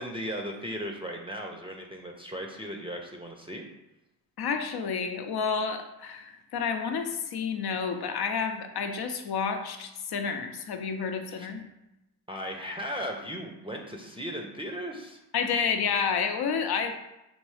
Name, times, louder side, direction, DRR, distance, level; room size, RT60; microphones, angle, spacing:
voice 1, 0.0-3.6 11.3-11.5 12.3-15.2, equal, 10° right, 1 dB, 0.6 m, -36 dB
voice 2, 4.4-11.6 15.3-16.9, left 6 dB, 55° left, 6 dB, 0.7 m, -30 dB
4.3 x 3.0 x 3.2 m, 0.93 s
supercardioid pair, 55°, 47 cm